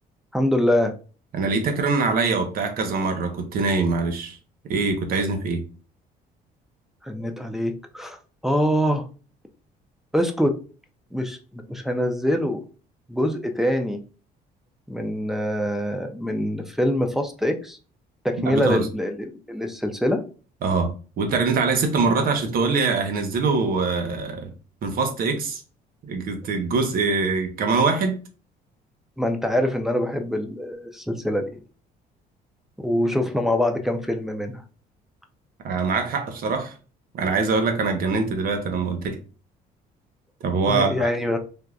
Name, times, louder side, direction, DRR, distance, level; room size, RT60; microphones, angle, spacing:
voice 1, 0.3-0.9 7.0-8.2 8.4-9.1 10.1-10.6 11.1-12.6 13.1-14.0 14.9-17.8 18.2-20.2 29.2-31.6 32.8-34.6 40.7-41.4, equal, ahead, 5 dB, 0.5 m, -24 dB
voice 2, 1.3-4.4 4.7-5.7 18.4-18.9 20.6-24.5 24.8-25.6 26.0-28.2 35.6-36.7 37.1-39.2 40.4-41.1, right 4 dB, 60° right, 6 dB, 0.8 m, -23 dB
3.5 x 2.7 x 2.3 m, 0.36 s
cardioid pair, 110°, 17 cm